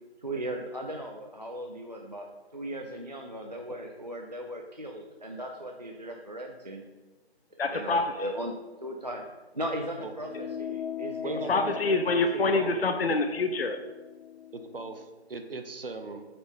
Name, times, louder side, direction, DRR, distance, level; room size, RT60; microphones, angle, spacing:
voice 1, 0.2-2.3 2.5-6.8 7.7-8.5 8.8-9.3 9.5-11.6, right 1 dB, 40° right, 1 dB, 0.5 m, -37 dB
voice 2, 7.6-8.3 11.5-13.8, left 3 dB, 65° left, 5 dB, 0.6 m, -26 dB
sound 1, 10.2-15.0, left 8 dB, 35° left, 1.1 m, -40 dB
voice 3, 11.2-12.0 12.5-12.7 13.1-13.2 14.5-16.2, right 3 dB, 55° right, 6 dB, 0.8 m, -38 dB
8.9 x 4.3 x 3.5 m, 1.2 s
figure-of-eight pair, 175°, 33 cm